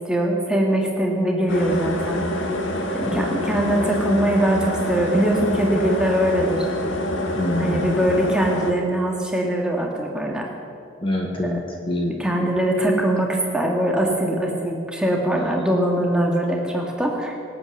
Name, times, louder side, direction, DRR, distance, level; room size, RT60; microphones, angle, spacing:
voice 1, 0.1-2.2 2.9-6.7 7.6-10.5 12.2-17.4, right 1 dB, 5° right, -1 dB, 2.0 m, -22 dB
sound 1, 1.5-8.7, left 1 dB, 70° left, 1.9 m, -26 dB
voice 2, 7.3-7.9 11.0-12.5 15.3-15.5, left 1 dB, 25° left, 0 dB, 1.5 m, -26 dB
24.5 x 8.7 x 6.6 m, 2.4 s
head